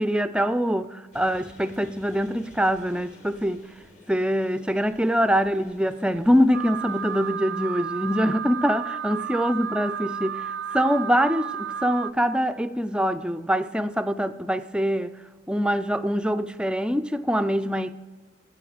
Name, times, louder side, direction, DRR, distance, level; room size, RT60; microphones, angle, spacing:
voice 1, 0.0-3.6 4.1-15.1 15.5-17.9, equal, 5° right, 0.4 m, -24 dB
sound 1, 1.1-7.3, left 2 dB, 40° left, 1.7 m, -52 dB
Alarm, 6.5-12.1, right 8 dB, 85° right, 0.4 m, -32 dB
16.0 x 6.8 x 5.0 m
head